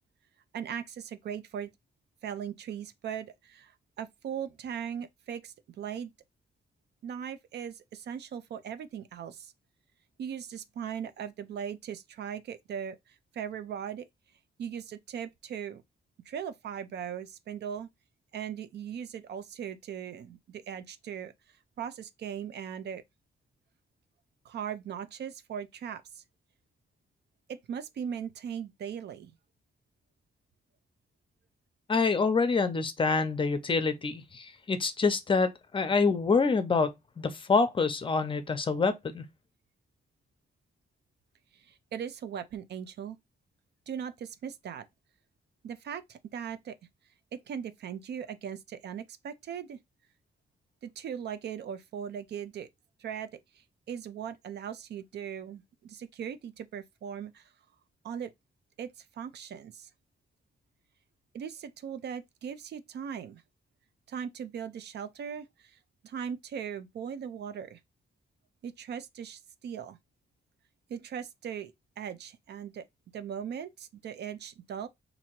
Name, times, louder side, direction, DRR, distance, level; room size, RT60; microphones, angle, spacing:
voice 1, 0.5-1.7 2.2-3.7 4.0-6.1 7.0-9.5 10.2-14.1 14.6-15.8 16.3-17.9 18.3-21.3 21.8-23.0 24.4-26.2 27.5-29.3 41.5-43.2 43.9-44.9 45.6-46.7 47.3-49.8 50.8-52.7 53.0-57.4 58.0-58.3 58.8-59.9 61.3-63.4 64.1-65.7 66.0-67.8 68.6-70.0 70.9-72.8 73.1-74.9, right 8 dB, 85° right, 0.5 m, -39 dB
voice 2, 31.9-39.2, left 4 dB, 30° left, 0.6 m, -26 dB
2.8 x 2.6 x 4.3 m
wide cardioid pair, 140°, 17 cm